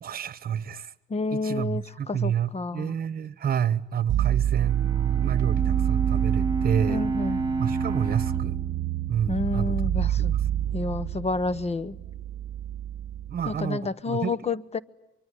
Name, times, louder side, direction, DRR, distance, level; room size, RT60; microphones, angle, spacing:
voice 1, 0.0-0.9 1.3-7.1 7.6-8.6 9.1-10.8 13.3-14.3, right 9 dB, 50° right, 1.1 m, -29 dB
voice 2, 1.1-2.9 6.9-7.4 9.3-10.4 10.7-12.0 13.5-14.8, left 3 dB, 30° left, 0.9 m, -29 dB
sound 1, 4.1-13.7, right 11 dB, 70° right, 0.9 m, -28 dB
Bowed string instrument, 4.6-10.1, right 3 dB, 15° right, 2.4 m, -31 dB
24.0 x 24.0 x 9.9 m
cardioid pair, 90°, 20 cm